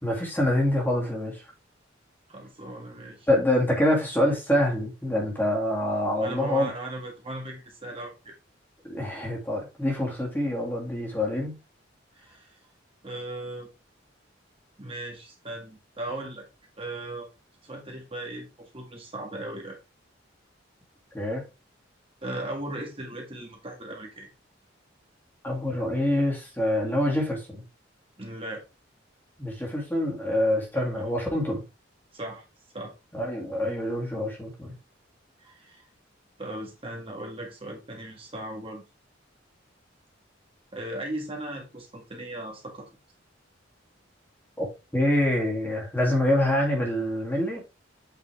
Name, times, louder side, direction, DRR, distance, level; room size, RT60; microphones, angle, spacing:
voice 1, 0.0-1.4 3.3-6.7 8.8-11.6 21.1-21.4 25.4-27.6 29.4-31.6 33.1-34.7 44.6-44.7 44.9-47.6, left 1 dB, 10° left, 2.2 m, -26 dB
voice 2, 2.3-3.3 6.2-8.3 12.1-12.6 13.0-13.7 14.8-16.4 16.8-17.3 17.6-19.8 22.2-24.3 28.2-28.6 30.7-31.0 32.1-32.4 32.7-32.9 35.4-35.9 36.4-38.8 40.7-42.8, right 1 dB, 30° right, 1.7 m, -37 dB
8.3 x 4.7 x 3.5 m
head